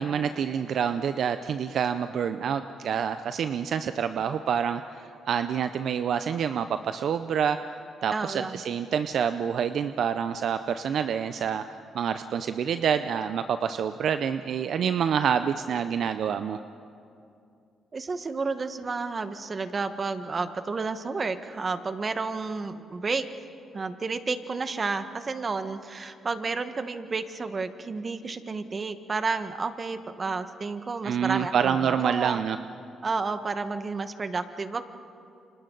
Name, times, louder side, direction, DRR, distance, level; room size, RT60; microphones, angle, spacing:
voice 1, 0.0-7.6 8.0-11.6 11.9-16.6 31.0-32.6, right 7 dB, 65° right, 10 dB, 0.6 m, -27 dB
voice 2, 8.1-8.6 17.9-23.3 23.7-32.4 33.0-34.8, right 4 dB, 40° right, 9 dB, 1.3 m, -31 dB
29.5 x 25.5 x 4.0 m, 2.5 s
supercardioid pair, 70°, 0 cm